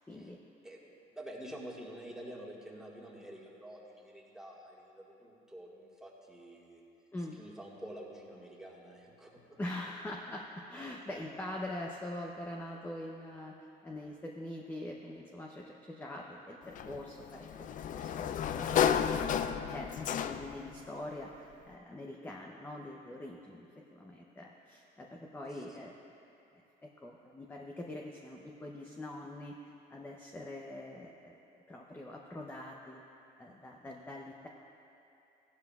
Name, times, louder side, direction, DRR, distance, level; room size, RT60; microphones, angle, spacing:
voice 1, 0.1-0.4 7.1-7.4 9.6-17.5 17.9-23.7 23.9-25.9 26.5-29.6 29.9-31.4 31.7-33.0 33.4-34.5, left 1 dB, 10° left, -1 dB, 0.7 m, -44 dB
voice 2, 0.6-6.8 7.3-9.6 25.5-25.6, right 1 dB, 5° right, -4 dB, 1.8 m, -48 dB
Sliding door, 16.7-20.7, left 8 dB, 50° left, 0.4 m, -32 dB
15.5 x 11.5 x 2.4 m, 2.9 s
cardioid pair, 110°, 17 cm